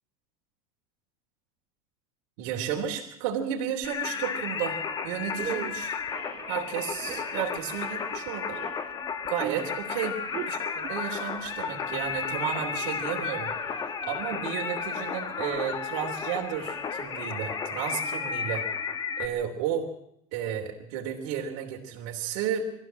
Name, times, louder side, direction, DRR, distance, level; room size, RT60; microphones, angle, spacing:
voice 1, 2.4-6.0 6.5-8.6 9.3-10.2 10.5-13.5 14.0-18.7 19.2-19.9 20.3-22.7, right 9 dB, 60° right, 0 dB, 3.3 m, -33 dB
Singing, 3.8-19.3, left 6 dB, 20° left, 1.6 m, -33 dB
sound 1, 4.7-4.9 5.2-17.6, right 11 dB, 25° right, 0.8 m, -44 dB
22.5 x 15.0 x 7.6 m, 0.75 s
supercardioid pair, 165°, 18 cm